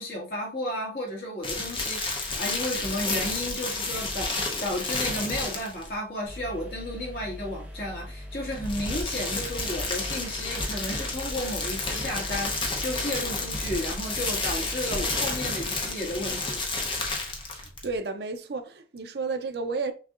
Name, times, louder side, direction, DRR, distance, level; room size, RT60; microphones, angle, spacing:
voice 1, 0.0-17.0, left 1 dB, 55° left, 1.8 m, -33 dB
sound 1, 1.4-5.9 8.4-17.9, left 3 dB, 30° left, 0.8 m, -31 dB
sound 2, 6.3-15.3, equal, 5° right, 0.9 m, -41 dB
voice 2, 17.5-19.9, right 4 dB, 65° right, 0.5 m, -32 dB
6.0 x 2.7 x 2.5 m
head